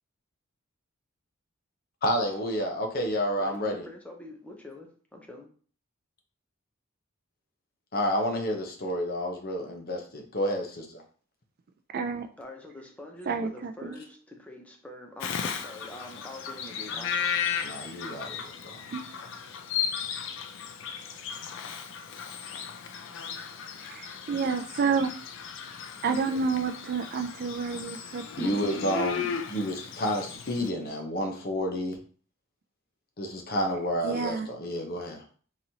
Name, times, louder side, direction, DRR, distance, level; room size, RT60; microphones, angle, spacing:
voice 1, 2.0-3.9 7.9-11.0 17.6-18.8 28.4-32.0 33.2-35.2, equal, 50° left, 0.8 m, -30 dB
voice 2, 3.4-5.5 12.4-17.1, left 2 dB, 5° left, 0.6 m, -45 dB
voice 3, 11.9-12.3 13.3-14.0 18.9-19.0 23.9-25.1 26.0-29.0 34.0-34.5, right 5 dB, 50° right, 0.3 m, -30 dB
Bird vocalization bird call bird song, 15.2-30.7, left 7 dB, 65° left, 0.4 m, -35 dB
3.9 x 3.0 x 2.8 m
head